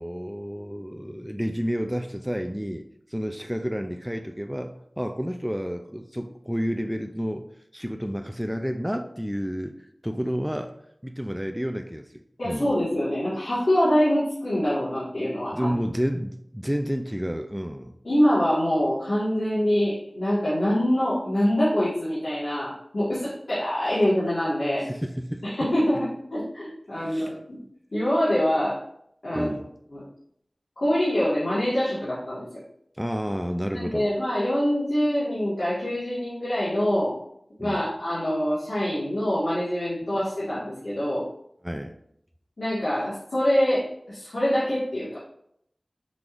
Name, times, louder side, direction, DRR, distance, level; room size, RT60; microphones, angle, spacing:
voice 1, 0.0-7.4 7.7-9.8 10.0-10.7 11.0-12.7 15.5-17.9 24.8-25.4 26.9-27.4 29.3-29.7 33.0-34.1 37.6-37.9 41.6-41.9, equal, 5° right, 5 dB, 0.4 m, -30 dB
voice 2, 12.4-15.7 18.0-24.9 25.4-27.6 27.9-28.8 29.2-29.5 29.9-30.0 30.8-32.5 33.7-37.1 37.6-41.3 42.6-45.1, equal, 75° left, -11 dB, 1.7 m, -25 dB
5.9 x 3.5 x 2.5 m, 0.72 s
wide cardioid pair, 45°, 0 cm